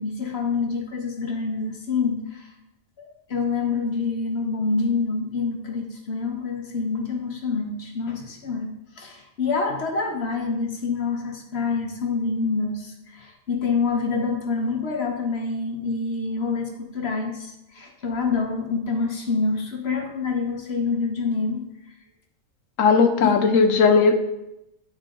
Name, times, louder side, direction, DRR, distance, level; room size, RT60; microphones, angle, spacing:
voice 1, 0.0-2.5 3.0-8.7 9.0-21.6 23.2-23.5, left 4 dB, 55° left, 2 dB, 1.1 m, -27 dB
voice 2, 22.8-24.2, left 5 dB, 75° left, 6 dB, 1.1 m, -17 dB
11.0 x 3.7 x 3.7 m, 0.88 s
omnidirectional pair, 1.4 m